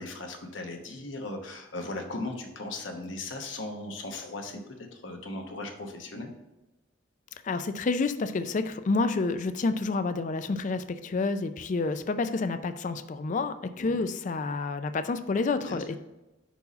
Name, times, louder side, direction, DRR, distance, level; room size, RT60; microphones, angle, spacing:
voice 1, 0.0-4.6 4.9-6.3 13.8-14.0 15.6-15.8, left 2 dB, 75° left, 3 dB, 1.0 m, -37 dB
voice 2, 7.4-16.0, left 3 dB, 40° left, 11 dB, 0.4 m, -29 dB
5.4 x 4.6 x 4.1 m, 1.0 s
head